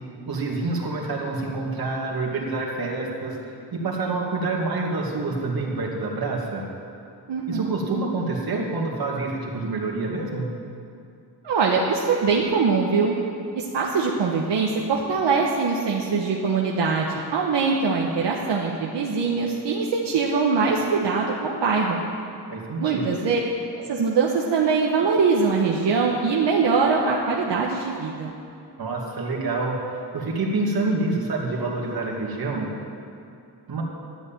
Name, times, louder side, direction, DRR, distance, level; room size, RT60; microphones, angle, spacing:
voice 1, 0.3-6.6 7.5-10.5 22.5-23.1 28.8-32.7 33.7-33.8, right 3 dB, 60° right, -2 dB, 2.5 m, -27 dB
voice 2, 7.3-7.8 11.4-13.1 13.5-22.0 22.8-23.4 23.8-28.3, right 4 dB, 85° right, -2 dB, 1.3 m, -22 dB
12.5 x 8.3 x 9.0 m, 2.5 s
wide cardioid pair, 130°, 41 cm